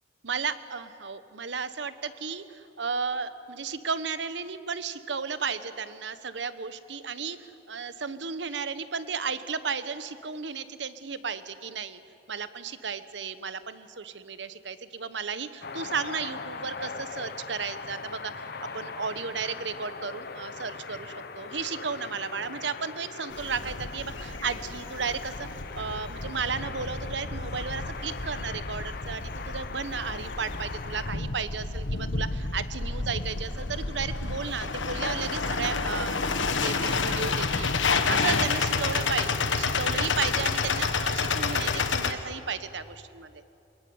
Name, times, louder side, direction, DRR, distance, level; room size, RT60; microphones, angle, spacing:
voice 1, 0.2-12.0 12.3-18.5 18.7-36.2 36.5-43.4, right 5 dB, 70° right, 12 dB, 1.0 m, -34 dB
sound 1, 15.6-31.2, left 4 dB, 55° left, 1.0 m, -40 dB
sound 2, 23.3-42.1, left 4 dB, 90° left, 1.4 m, -30 dB
23.5 x 21.5 x 9.4 m, 2.7 s
head